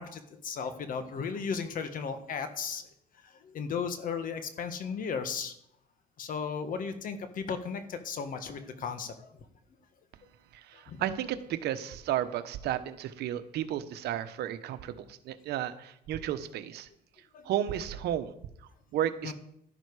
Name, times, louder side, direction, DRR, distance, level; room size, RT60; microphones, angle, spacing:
voice 1, 0.0-2.8 3.2-5.5 6.2-9.5 10.7-11.0 17.3-17.5 19.2-19.3, left 6 dB, 55° left, 8 dB, 1.6 m, -35 dB
voice 2, 10.7-16.9 17.4-18.3 18.9-19.3, right 11 dB, 75° right, 11 dB, 1.1 m, -33 dB
12.0 x 12.0 x 4.9 m, 0.73 s
cardioid pair, 110°, 17 cm